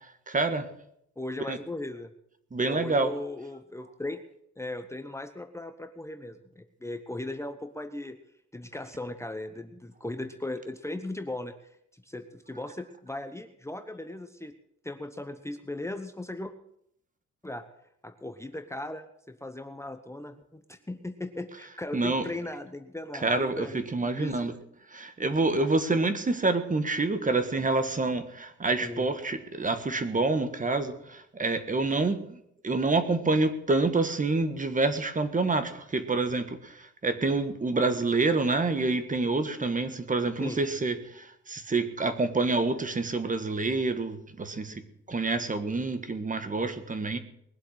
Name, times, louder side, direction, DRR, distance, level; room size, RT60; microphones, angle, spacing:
voice 1, 0.3-0.7 1.5-1.6 2.5-3.1 21.9-22.2 23.2-23.7 23.9-24.5 24.9-44.8 45.1-47.2, right 3 dB, 25° right, 10 dB, 1.5 m, -27 dB
voice 2, 1.2-2.1 2.6-4.2 4.6-8.2 8.5-11.5 11.9-14.5 14.8-16.5 17.4-17.6 18.0-24.6 28.8-29.1 40.4-40.6, left 2 dB, 10° left, 7 dB, 1.0 m, -38 dB
21.0 x 7.7 x 6.5 m, 0.73 s
cardioid pair, 90°, 30 cm